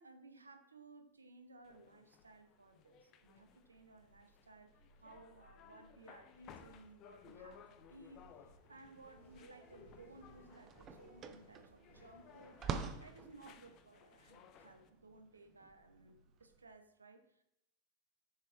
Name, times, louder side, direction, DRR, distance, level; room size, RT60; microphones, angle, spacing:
voice 1, 0.0-12.7 13.0-17.4, right 3 dB, 75° right, 7 dB, 0.8 m, -59 dB
sound 1, 1.6-14.9, left 8 dB, 35° left, 0.5 m, -61 dB
sound 2, 1.6-16.8, right 1 dB, 60° right, 2.1 m, -66 dB
sound 3, 9.7-9.8 10.1-16.6, right 6 dB, 30° right, 0.5 m, -46 dB
6.7 x 5.2 x 3.2 m, 0.77 s
figure-of-eight pair, 90°, 0 cm